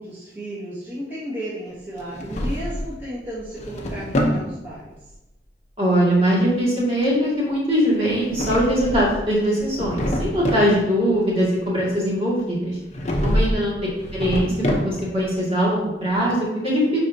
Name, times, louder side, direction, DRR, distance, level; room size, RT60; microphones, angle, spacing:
voice 1, 0.0-5.0 13.0-13.4, equal, 15° right, -11 dB, 1.8 m, -34 dB
Drawer open or close, 2.0-3.0 3.4-4.4 8.1-9.2 9.6-10.7 12.9-13.6 13.9-15.2, equal, 40° left, 0.9 m, -25 dB
voice 2, 5.8-12.8 13.2-13.8 14.1-17.0, equal, 35° right, -6 dB, 2.2 m, -21 dB
10.5 x 4.2 x 2.8 m, 0.97 s
head